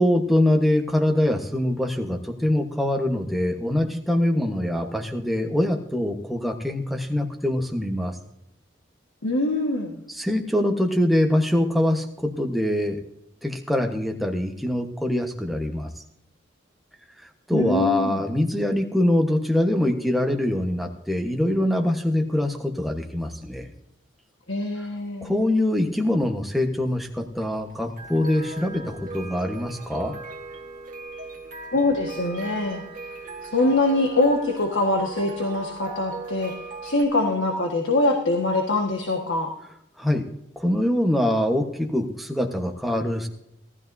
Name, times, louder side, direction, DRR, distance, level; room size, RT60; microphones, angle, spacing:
voice 1, 0.0-8.2 10.1-13.0 13.4-15.9 17.2-23.7 24.8-24.9 25.2-30.1 40.0-40.3 40.6-43.3, left 1 dB, ahead, 3 dB, 1.1 m, -24 dB
voice 2, 9.2-10.0 17.5-18.2 24.5-25.3 31.7-32.8 33.4-36.5 36.8-39.5, left 2 dB, 80° left, 1 dB, 1.5 m, -23 dB
sound 1, 26.2-37.0, right 3 dB, 40° right, 1.6 m, -39 dB
18.0 x 13.5 x 2.7 m, 0.78 s
head